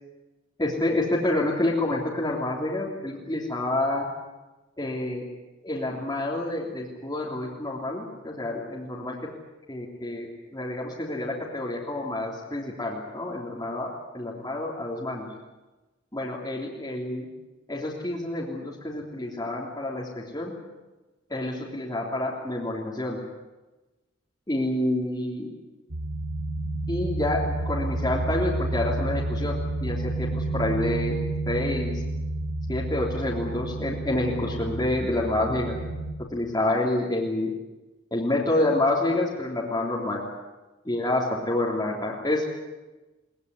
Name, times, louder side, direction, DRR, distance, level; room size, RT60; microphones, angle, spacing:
voice 1, 0.6-4.0 4.8-5.2 5.6-9.2 9.7-13.9 14.1-15.3 16.1-17.3 17.7-20.5 21.3-23.2 24.5-25.5 26.9-31.2 31.4-32.0 32.7-35.8 36.3-37.5 38.1-40.2 40.8-42.5, left 1 dB, 20° left, -5 dB, 3.4 m, -28 dB
sound 1, 25.9-36.2, right 2 dB, 65° right, 2.2 m, -30 dB
22.0 x 20.5 x 9.6 m, 1.1 s
head